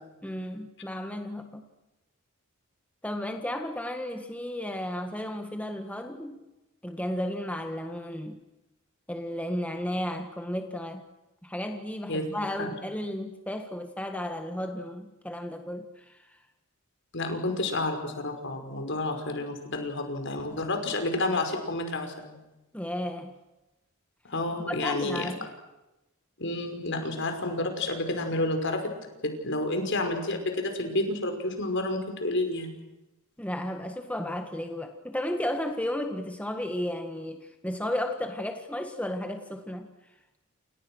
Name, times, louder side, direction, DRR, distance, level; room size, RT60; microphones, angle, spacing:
voice 1, 0.2-1.6 3.0-6.4 6.8-8.4 9.1-11.0 11.4-16.4 22.7-23.3 24.6-25.5 33.4-39.9, left 1 dB, 5° left, 5 dB, 1.7 m, -33 dB
voice 2, 17.1-22.4 24.3-25.3 26.4-28.8 29.2-32.8, left 2 dB, 60° left, 6 dB, 5.6 m, -30 dB
29.5 x 29.0 x 6.4 m, 0.99 s
head